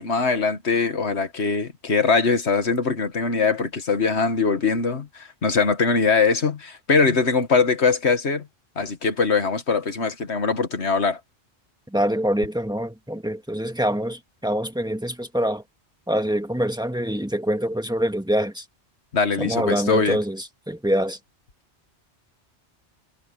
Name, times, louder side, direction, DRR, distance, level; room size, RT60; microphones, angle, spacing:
voice 1, 0.0-8.5 8.8-11.2 19.1-20.2, left 4 dB, 70° left, 2.0 m, -22 dB
voice 2, 11.9-15.6 16.1-18.6 19.4-21.2, equal, 5° right, 1.7 m, -25 dB
omnidirectional pair, 1.2 m